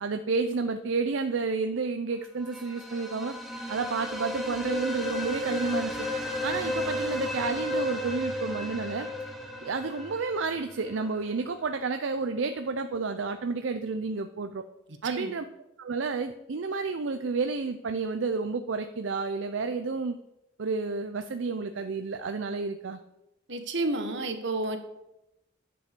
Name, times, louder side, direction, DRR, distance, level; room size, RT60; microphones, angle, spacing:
voice 1, 0.0-3.4 3.7-6.0 6.4-9.1 9.6-14.6 15.0-15.5 15.8-20.2 20.6-23.0, right 4 dB, 90° right, 8 dB, 0.5 m, -30 dB
sound 1, 2.4-11.2, left 1 dB, ahead, 1.4 m, -33 dB
voice 2, 15.0-15.3 23.5-24.8, right 2 dB, 70° right, 6 dB, 1.4 m, -30 dB
10.0 x 5.4 x 6.8 m, 0.90 s
head